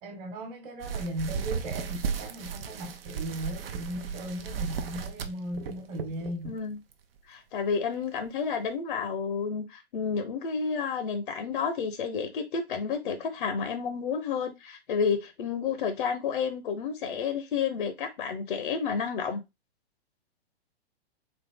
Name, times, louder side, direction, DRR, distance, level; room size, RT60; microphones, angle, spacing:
voice 1, 0.0-6.6, right 1 dB, 35° right, 1.3 m, -37 dB
sound 1, 0.8-6.5 6.9-7.2 7.7-7.8 8.3-8.4, right 6 dB, 60° right, 0.7 m, -35 dB
voice 2, 6.4-6.8 7.3-19.4, left 6 dB, 50° left, 0.7 m, -30 dB
3.9 x 2.8 x 3.6 m
figure-of-eight pair, 110°, 33 cm